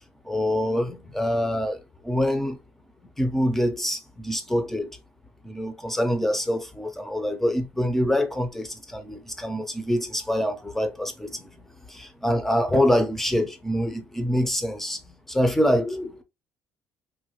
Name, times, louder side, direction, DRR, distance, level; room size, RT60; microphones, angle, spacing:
voice 1, 0.2-2.6 3.2-4.9 5.4-16.2, equal, 5° left, 0.5 m, -25 dB
3.1 x 2.1 x 3.0 m
cardioid pair, 155°, 6 cm